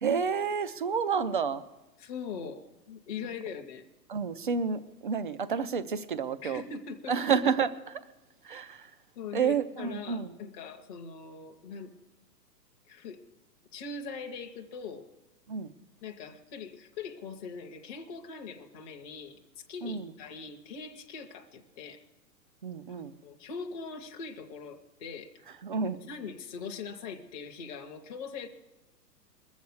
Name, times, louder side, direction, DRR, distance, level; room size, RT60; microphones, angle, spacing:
voice 1, 0.0-1.6 4.1-6.6 7.1-8.0 8.4-8.9 9.3-10.3 15.5-15.7 19.8-20.1 22.6-23.1 25.6-26.1, right 6 dB, 35° right, 0.4 m, -30 dB
voice 2, 2.0-3.8 6.4-7.1 9.2-11.9 12.9-13.2 13.7-15.0 16.0-22.0 23.0-25.3 25.7-28.5, left 5 dB, 25° left, 0.7 m, -41 dB
20.5 x 7.2 x 6.4 m
figure-of-eight pair, 115°, 49 cm